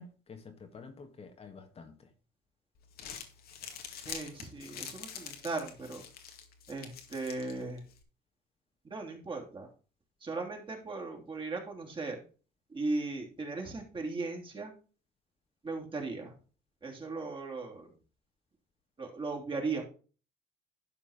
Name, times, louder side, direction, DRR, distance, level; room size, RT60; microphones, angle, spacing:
voice 1, 0.0-2.1, left 4 dB, 35° left, 1.7 m, -49 dB
Crumpling crinkling, 2.8-8.0, left 7 dB, 65° left, 2.0 m, -46 dB
voice 2, 4.1-6.0 6.7-7.8 8.9-9.7 10.2-12.2 12.7-14.7 15.6-16.3 16.8-17.9 19.0-19.8, right 3 dB, 30° right, 3.1 m, -37 dB
12.0 x 4.9 x 5.0 m
cardioid pair, 110°, 17 cm